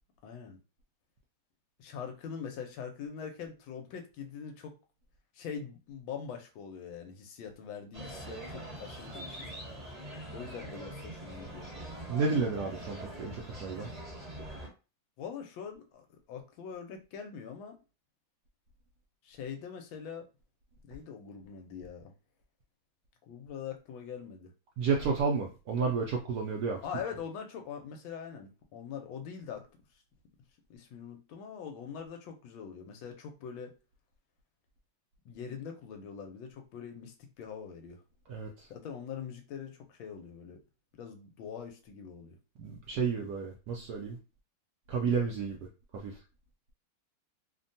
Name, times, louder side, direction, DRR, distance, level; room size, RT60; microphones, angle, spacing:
voice 1, 0.2-0.6 1.8-4.7 5.3-9.5 10.3-11.7 15.2-17.8 19.2-20.3 20.8-22.1 23.3-24.5 26.8-29.6 30.7-33.7 35.2-38.0 38.7-40.6 40.9-42.4, left 7 dB, 80° left, 4 dB, 1.4 m, -43 dB
sound 1, 7.9-14.7, right 1 dB, 30° right, 0.7 m, -43 dB
voice 2, 12.1-13.9 24.8-26.8 38.3-38.7 42.6-44.2 44.9-45.6 45.9-46.1, right 5 dB, 75° right, 0 dB, 0.9 m, -31 dB
3.4 x 2.2 x 2.6 m, 0.32 s
omnidirectional pair, 2.3 m